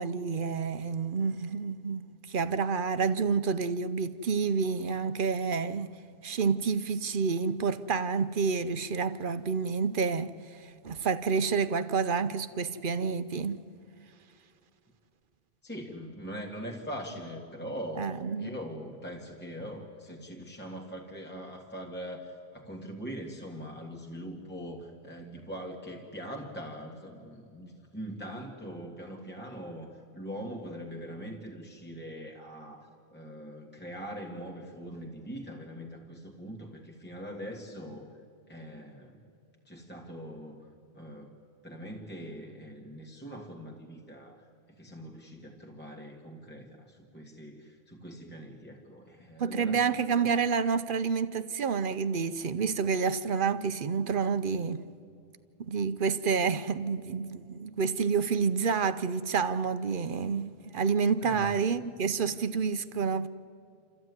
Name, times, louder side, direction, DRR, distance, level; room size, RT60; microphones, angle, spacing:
voice 1, 0.0-6.0 6.2-13.6 18.0-18.6 49.4-54.8 55.6-63.3, right 5 dB, 60° right, 0.9 m, -29 dB
voice 2, 15.6-18.1 18.4-38.1 38.5-39.2 39.7-41.3 41.6-44.5 44.8-49.9 61.2-61.5, equal, 10° left, 1.8 m, -42 dB
27.5 x 14.0 x 9.5 m
omnidirectional pair, 1.0 m